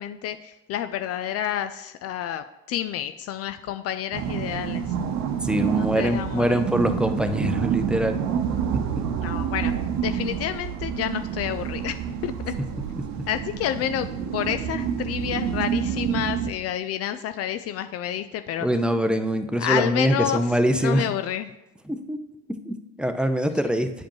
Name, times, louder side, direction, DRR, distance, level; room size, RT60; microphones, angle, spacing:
voice 1, 0.0-4.8 5.8-6.6 9.2-9.7 10.0-12.0 12.2-12.5 13.3-14.1 14.3-18.7 19.6-21.5, left 11 dB, 55° left, 10 dB, 0.4 m, -29 dB
sound 1, 4.1-16.5, right 8 dB, 65° right, 0.9 m, -28 dB
voice 2, 5.4-8.2 8.7-9.0 12.6-12.7 13.0-13.3 18.6-21.1 21.9-22.2 22.5-23.9, equal, 5° right, 8 dB, 0.6 m, -24 dB
8.7 x 5.0 x 3.1 m, 0.93 s
hypercardioid pair, 70°, 30 cm